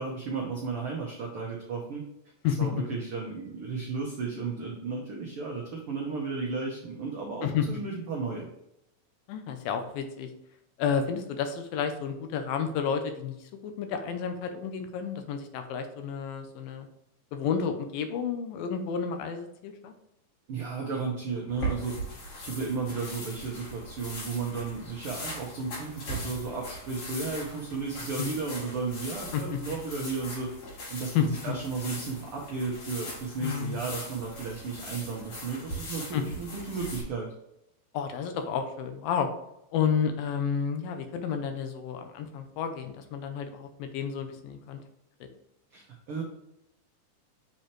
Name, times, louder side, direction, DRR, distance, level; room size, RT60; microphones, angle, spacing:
voice 1, 0.0-2.0 2.4-8.5 20.5-21.9 22.2-30.5 30.9-37.3 45.7-46.2, right 4 dB, 85° right, -2 dB, 1.2 m, -34 dB
voice 2, 9.3-10.3 10.8-16.9 17.3-19.9 28.2-28.4 29.3-29.6 31.2-31.3 33.4-33.8 36.1-36.2 37.9-39.3 39.7-44.8, left 7 dB, 85° left, 7 dB, 2.6 m, -31 dB
sound 1, 21.5-37.0, equal, 65° left, 4.1 m, -40 dB
7.1 x 4.4 x 3.1 m, 0.81 s
omnidirectional pair, 4.1 m